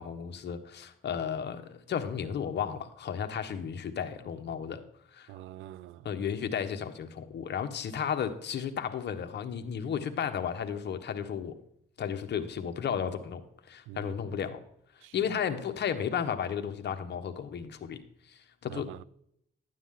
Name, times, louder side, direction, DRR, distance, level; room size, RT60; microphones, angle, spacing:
voice 1, 0.0-4.8 5.1-5.3 6.0-11.5 12.0-13.4 13.7-14.6 15.1-18.0 18.3-18.9, left 8 dB, 60° left, 1.3 m, -33 dB
voice 2, 5.3-6.0 13.9-14.2 15.0-15.1 18.7-19.0, right 14 dB, 80° right, 0.4 m, -45 dB
12.5 x 9.3 x 3.8 m
cardioid pair, 90°, 20 cm